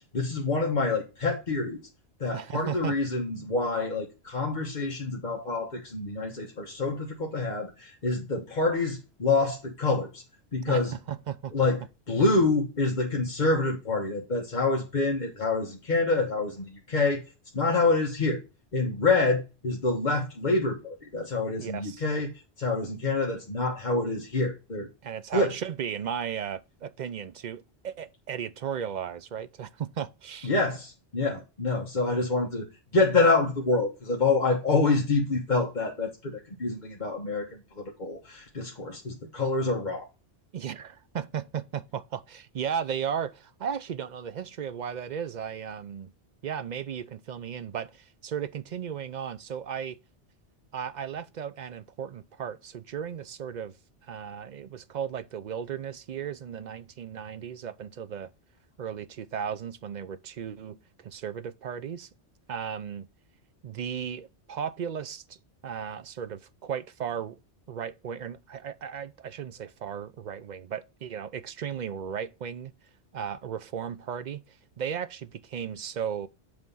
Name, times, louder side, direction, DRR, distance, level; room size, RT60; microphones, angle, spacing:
voice 1, 0.1-1.8 2.2-10.2 10.5-10.9 11.5-11.8 12.1-17.2 17.5-18.4 18.7-22.3 22.6-24.9 25.3-25.5 30.4-32.7 32.9-40.1, left 3 dB, 45° left, 1.2 m, -27 dB
voice 2, 2.3-2.9 10.7-11.5 21.6-22.0 25.0-30.5 40.5-46.1 46.4-50.0 50.7-53.7 54.0-58.3 58.8-60.8 61.0-62.1 62.5-63.1 63.6-65.4 65.6-67.4 67.7-72.7 73.1-76.3, right 8 dB, 55° right, 0.5 m, -35 dB
7.8 x 3.4 x 5.4 m
omnidirectional pair, 1.2 m